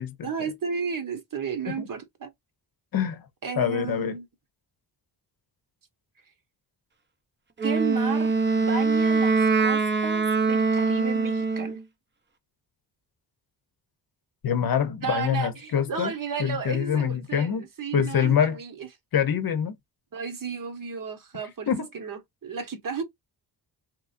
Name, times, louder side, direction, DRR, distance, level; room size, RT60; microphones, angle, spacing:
voice 1, 0.2-2.3 3.4-4.2 7.6-11.8 15.0-18.9 20.1-23.0, right 6 dB, 45° right, 1.1 m, -33 dB
voice 2, 2.9-3.2 3.6-4.2 14.4-16.1 16.4-17.7 17.9-18.6 19.1-19.7 21.7-21.9, left 8 dB, 50° left, 0.7 m, -25 dB
Wind instrument woodwind instrument, 7.6-11.8, right 4 dB, 25° right, 0.7 m, -23 dB
3.0 x 2.5 x 2.5 m
cardioid pair, 65°, 44 cm